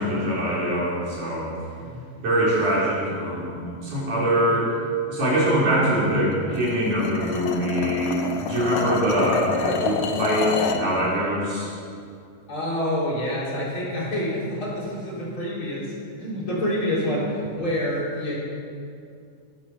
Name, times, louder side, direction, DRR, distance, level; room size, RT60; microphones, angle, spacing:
voice 1, 0.0-1.5 2.2-3.6 3.8-4.8 5.1-11.7, equal, 75° right, -7 dB, 5.8 m, -23 dB
sound 1, 6.5-10.9, left 5 dB, 70° left, 2.1 m, -28 dB
voice 2, 12.5-15.9 16.2-18.3, equal, 40° left, -7 dB, 4.3 m, -27 dB
15.0 x 12.0 x 5.7 m, 2.3 s
omnidirectional pair, 3.6 m